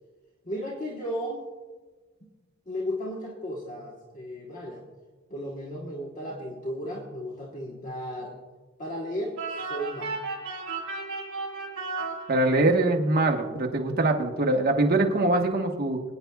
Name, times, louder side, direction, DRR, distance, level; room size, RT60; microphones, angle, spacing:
voice 1, 0.4-1.5 2.2-2.3 2.7-4.9 5.3-8.4 8.8-10.1, equal, 40° left, -1 dB, 1.2 m, -35 dB
sound 1, 9.4-12.9, right 3 dB, 75° right, 2.7 m, -34 dB
voice 2, 12.3-16.0, right 2 dB, 45° right, 1 dB, 1.2 m, -23 dB
25.5 x 9.1 x 2.3 m, 1.3 s
head